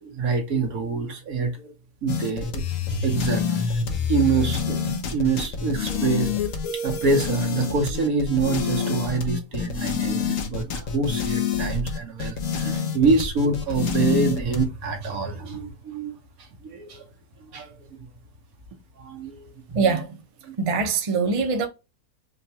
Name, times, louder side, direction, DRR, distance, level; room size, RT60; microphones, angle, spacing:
voice 1, 0.0-1.7 2.0-2.6 3.0-6.3 6.8-16.1 16.6-17.0 17.5-17.7 19.0-19.4 19.7-19.8 20.5-20.6, right 4 dB, 65° right, 1.5 m, -26 dB
sound 1, 2.1-14.7, left 6 dB, 60° left, 1.1 m, -27 dB
voice 2, 19.7-20.2 20.6-21.7, right 5 dB, 40° right, 0.4 m, -23 dB
5.1 x 2.3 x 2.8 m
omnidirectional pair, 1.7 m